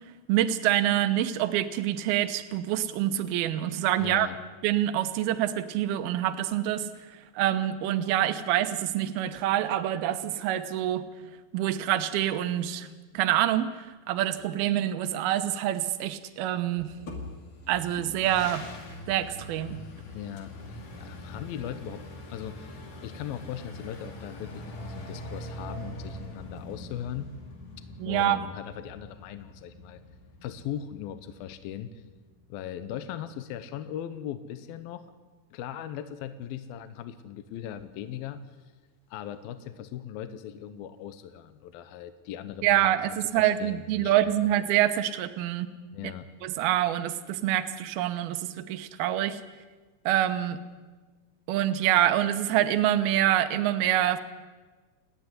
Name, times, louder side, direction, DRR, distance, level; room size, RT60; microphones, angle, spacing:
voice 1, 0.3-4.3 4.6-6.9 7.4-11.0 11.5-12.9 13.1-13.7 14.1-16.9 17.7-18.6 19.1-19.8 28.0-28.4 42.6-45.7 46.4-49.4 50.1-50.6 51.5-54.2, right 12 dB, 75° right, 10 dB, 2.8 m, -26 dB
voice 2, 4.0-4.4 20.1-22.0 22.3-27.3 28.1-30.0 30.4-32.0 32.5-35.0 35.5-38.6 39.1-42.9 43.2-44.1 45.9-46.3, left 10 dB, 75° left, 10 dB, 2.6 m, -39 dB
sound 1, 16.8-32.5, left 1 dB, 55° left, 4.1 m, -43 dB
30.0 x 11.0 x 9.8 m, 1.3 s
omnidirectional pair, 4.7 m